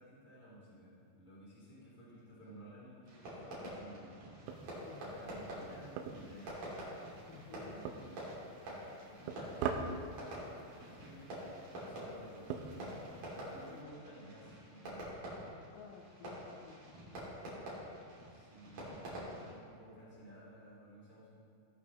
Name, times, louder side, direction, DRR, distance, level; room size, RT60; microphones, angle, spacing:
voice 1, 0.0-4.1 4.9-6.9 7.5-15.1 18.3-21.4, equal, 20° right, -8 dB, 1.3 m, -55 dB
Fireworks, 3.0-19.5, right 1 dB, 45° right, 3.8 m, -47 dB
sound 1, 4.5-13.8, right 6 dB, 85° right, 3.2 m, -45 dB
voice 2, 7.3-8.0 13.5-14.1 15.7-17.5, left 6 dB, 85° left, 2 dB, 2.4 m, -55 dB
16.5 x 8.8 x 3.1 m, 2.6 s
omnidirectional pair, 5.7 m